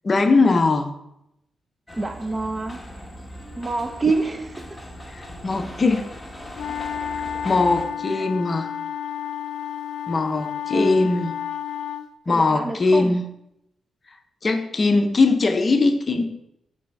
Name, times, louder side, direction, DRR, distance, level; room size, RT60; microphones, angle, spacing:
voice 1, 0.0-0.9 5.1-6.0 7.4-8.7 10.1-11.3 12.3-13.2 14.4-16.3, left 3 dB, 35° left, 0.6 m, -20 dB
sound 1, 1.9-7.9, equal, 10° left, 1.1 m, -39 dB
voice 2, 1.9-2.8 3.6-4.8 10.7-11.1 12.3-13.2, right 3 dB, 25° right, 0.6 m, -27 dB
sound 2, 6.6-12.1, left 9 dB, 90° left, 0.4 m, -31 dB
5.4 x 3.4 x 5.3 m
cardioid pair, 85°, 0 cm